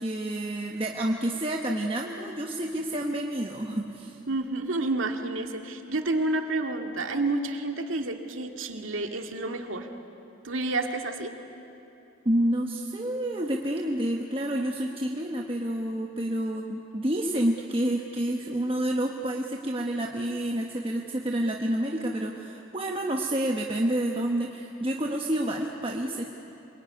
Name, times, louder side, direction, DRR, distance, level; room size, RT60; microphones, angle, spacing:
voice 1, 0.0-4.2 12.2-26.2, right 1 dB, 25° right, 1 dB, 1.2 m, -29 dB
voice 2, 4.3-9.9 10.4-11.3, right 2 dB, 85° right, 4 dB, 2.1 m, -29 dB
26.0 x 23.0 x 9.8 m, 3.0 s
head